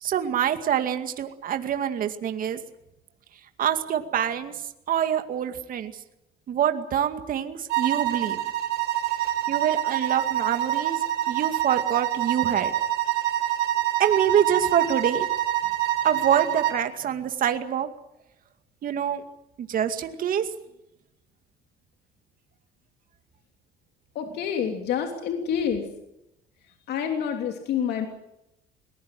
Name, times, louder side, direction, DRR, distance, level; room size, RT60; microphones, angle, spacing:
voice 1, 0.0-2.6 3.6-4.5 4.9-5.9 6.5-8.4 9.5-12.7 14.0-15.3 16.0-17.9 18.8-19.2 19.6-20.5, right 9 dB, 55° right, 8 dB, 2.3 m, -25 dB
sound 1, 7.7-16.8, right 13 dB, 85° right, 4.5 m, -26 dB
voice 2, 24.1-25.9 26.6-28.1, left 8 dB, 75° left, 4 dB, 3.1 m, -28 dB
21.5 x 20.5 x 7.8 m, 0.85 s
cardioid pair, 110°, 17 cm